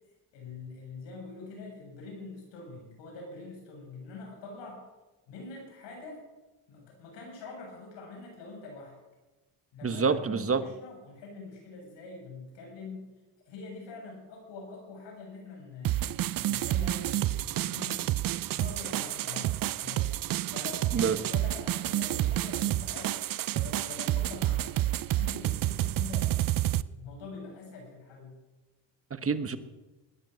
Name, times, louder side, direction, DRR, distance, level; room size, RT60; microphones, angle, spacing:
voice 1, 0.3-4.9 5.3-6.2 6.7-9.0 9.7-13.1 13.5-18.1 18.5-20.1 20.5-23.2 23.5-26.4 26.7-28.3, left 3 dB, 85° left, 0 dB, 7.2 m, -44 dB
voice 2, 9.8-10.6 20.9-21.2 29.1-29.6, right 5 dB, 30° right, 11 dB, 1.3 m, -27 dB
sound 1, 15.8-26.8, right 14 dB, 55° right, 0.6 m, -29 dB
19.5 x 10.5 x 6.3 m, 1.1 s
cardioid pair, 90°, 42 cm